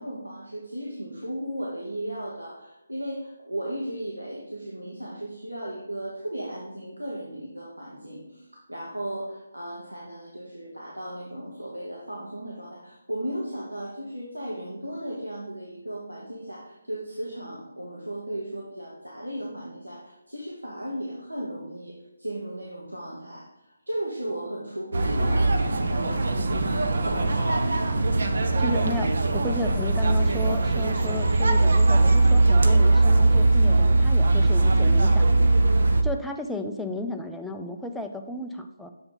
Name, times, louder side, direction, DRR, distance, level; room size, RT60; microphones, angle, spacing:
voice 1, 0.0-23.5 23.9-26.3 26.9-27.6, right 1 dB, 85° right, -4 dB, 1.2 m, -35 dB
sound 1, 24.9-36.0, right 2 dB, 50° right, 0.6 m, -20 dB
voice 2, 28.6-35.5 36.0-38.9, left 2 dB, ahead, 3 dB, 0.3 m, -34 dB
6.8 x 3.8 x 3.9 m, 0.91 s
figure-of-eight pair, 150°, 0 cm